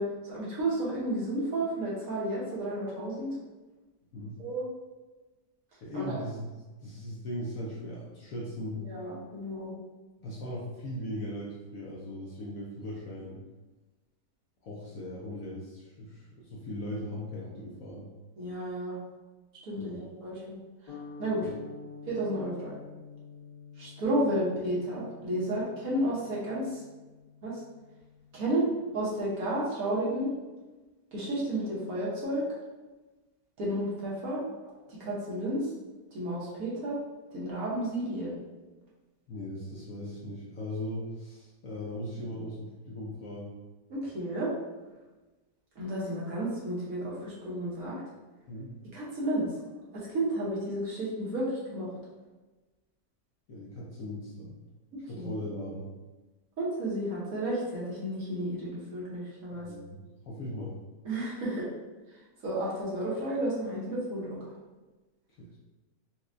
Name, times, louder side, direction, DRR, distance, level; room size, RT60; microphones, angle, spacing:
voice 1, 0.0-3.4 4.4-4.6 5.9-6.2 8.8-9.7 18.4-19.0 19.7-20.6 21.2-21.5 22.1-22.7 23.8-26.8 27.4-27.6 28.3-30.3 31.1-32.4 33.6-34.7 35.0-35.7 36.1-37.0 37.3-38.3 43.9-44.5 45.8-48.0 48.9-49.5 49.9-51.9 55.1-55.3 56.6-59.7 61.0-61.7 62.4-64.4, right 1 dB, 60° right, -6 dB, 1.3 m, -32 dB
voice 2, 5.8-6.5 6.8-8.8 10.2-13.4 14.6-18.1 19.7-20.0 21.4-21.5 39.3-43.5 48.5-48.8 53.5-54.5 55.1-55.9 59.5-60.0 60.2-60.7 65.4-65.6, left 1 dB, 65° left, -4 dB, 0.9 m, -39 dB
sound 1, 20.9-29.2, left 5 dB, 85° left, 1.6 m, -49 dB
4.2 x 2.3 x 2.5 m, 1.2 s
omnidirectional pair, 1.8 m